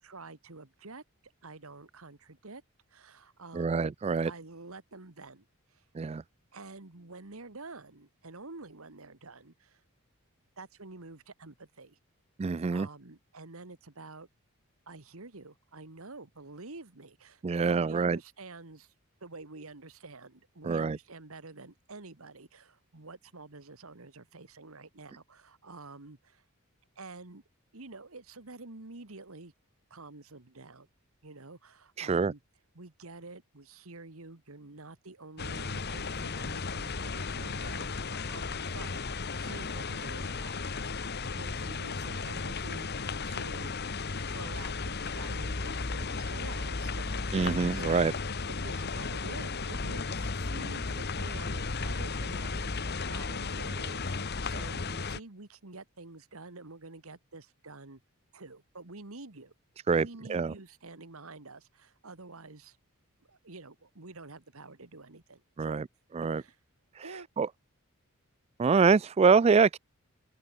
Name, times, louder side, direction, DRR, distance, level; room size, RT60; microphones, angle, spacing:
voice 1, 0.0-1.0 1.4-2.6 2.9-3.9 4.2-5.8 6.5-9.8 10.6-12.0 12.7-14.3 14.9-18.9 19.2-26.4 27.0-27.4 27.7-29.5 29.9-30.9 31.2-32.4 32.8-40.7 41.3-43.8 44.3-48.1 48.5-58.0 58.3-59.5 59.9-62.8 63.3-65.8 66.3-66.6 67.0-67.3 69.6-69.7, right 3 dB, 70° right, 1.8 m, -48 dB
voice 2, 3.5-4.3 5.9-6.2 12.4-12.9 17.4-18.2 20.6-21.0 32.0-32.3 47.3-48.1 59.9-60.5 65.6-65.9 66.1-66.4 67.4-67.5 68.6-69.8, right 5 dB, 30° right, 0.3 m, -25 dB
sound 1, 35.4-55.2, left 4 dB, 45° left, 1.2 m, -35 dB
open air
head